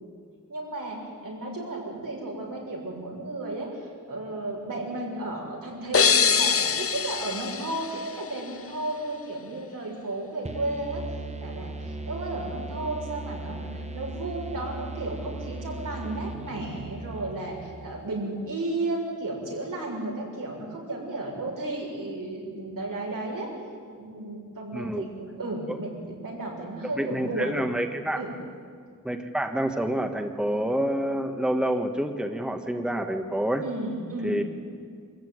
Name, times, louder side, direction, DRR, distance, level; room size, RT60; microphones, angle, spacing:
voice 1, 0.5-23.5 23.9-27.7 28.2-28.4 33.6-34.4, right 2 dB, 85° right, -2 dB, 6.6 m, -33 dB
sound 1, 5.9-8.7, left 6 dB, 45° left, 0.7 m, -24 dB
sound 2, 10.4-18.1, right 2 dB, 20° right, 1.3 m, -37 dB
voice 2, 24.7-25.1 25.7-25.8 27.0-28.2 29.0-33.6 34.2-34.4, right 1 dB, 5° right, 5 dB, 1.5 m, -28 dB
24.0 x 14.5 x 9.4 m, 2.1 s
wide cardioid pair, 80°, 32 cm